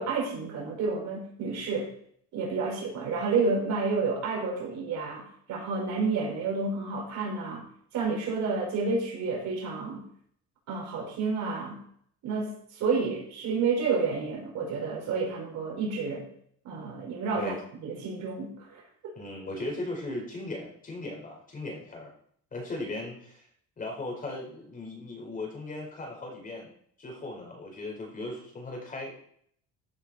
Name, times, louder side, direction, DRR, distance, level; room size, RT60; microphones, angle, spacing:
voice 1, 0.0-1.9 2.3-5.2 5.5-7.7 7.9-10.0 10.7-11.8 12.2-16.3 16.6-17.5 17.8-18.8, right 4 dB, 65° right, -1 dB, 5.5 m, -30 dB
voice 2, 19.1-22.1 22.5-23.4 23.8-26.7 27.0-29.2, left 2 dB, 25° left, 0 dB, 5.1 m, -37 dB
15.0 x 8.0 x 4.5 m, 0.64 s
cardioid pair, 140°, 30 cm